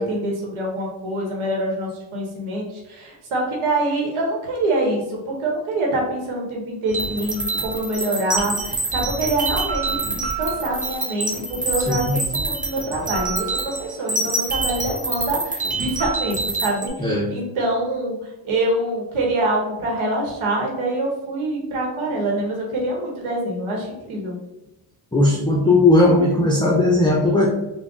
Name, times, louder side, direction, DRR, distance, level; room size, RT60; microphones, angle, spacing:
voice 1, 0.0-18.1 18.4-24.4, right 1 dB, 90° right, -2 dB, 1.0 m, -25 dB
sound 1, 6.9-16.9, right 3 dB, 15° right, 0.8 m, -26 dB
voice 2, 11.9-12.2 17.0-17.3 25.1-27.5, left 2 dB, 10° left, -3 dB, 0.4 m, -17 dB
3.8 x 2.2 x 3.5 m, 0.98 s
wide cardioid pair, 130°, 47 cm